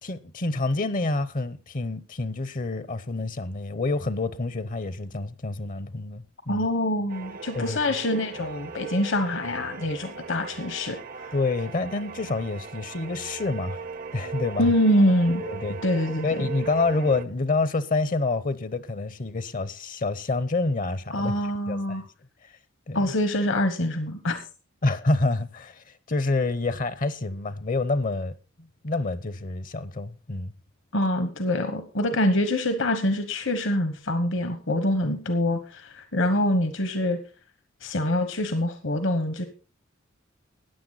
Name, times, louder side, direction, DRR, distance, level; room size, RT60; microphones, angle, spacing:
voice 1, 0.0-6.7 7.6-7.8 11.3-13.8 14.1-14.7 15.4-15.8 16.2-21.3 21.7-22.0 22.9-23.1 24.8-28.3 28.6-30.5, left 3 dB, 40° left, 0.8 m, -28 dB
voice 2, 6.5-11.3 14.6-15.4 15.8-16.4 21.1-22.0 22.9-24.4 30.9-37.2 37.8-39.5, left 1 dB, 65° left, 1.2 m, -25 dB
sound 1, 7.1-17.2, right 5 dB, 45° right, 0.7 m, -38 dB
14.0 x 9.6 x 4.0 m
head